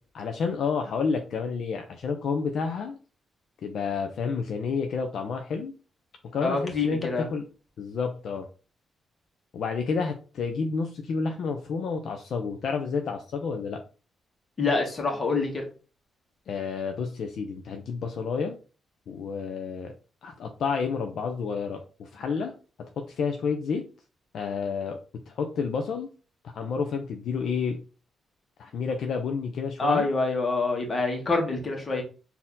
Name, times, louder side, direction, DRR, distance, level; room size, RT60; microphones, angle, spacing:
voice 1, 0.1-3.0 3.6-5.7 6.2-7.4 7.8-8.5 9.5-13.8 16.5-18.6 19.1-19.9 20.2-22.5 22.8-23.8 24.3-25.0 25.3-26.1 26.4-27.8 28.6-30.1, left 5 dB, 70° left, 4 dB, 0.5 m, -30 dB
voice 2, 6.4-7.3 14.6-15.5 29.8-32.0, left 3 dB, 40° left, 2 dB, 1.5 m, -26 dB
4.2 x 2.8 x 3.7 m, 0.35 s
cardioid pair, 85°, 0 cm